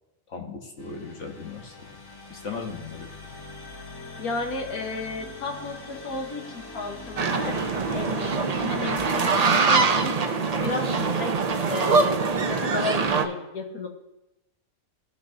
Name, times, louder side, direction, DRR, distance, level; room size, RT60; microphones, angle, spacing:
voice 1, 0.3-1.7 2.3-3.1, left 4 dB, 55° left, 1 dB, 1.5 m, -37 dB
sound 1, 0.8-9.0, left 2 dB, 20° left, 0.7 m, -42 dB
voice 2, 4.2-7.6 7.9-10.2 10.6-11.3 11.7-13.9, left 3 dB, 85° left, 2 dB, 1.8 m, -33 dB
sound 2, 7.2-13.3, right 4 dB, 55° right, 0.4 m, -23 dB
17.0 x 6.2 x 2.8 m, 0.97 s
omnidirectional pair, 1.5 m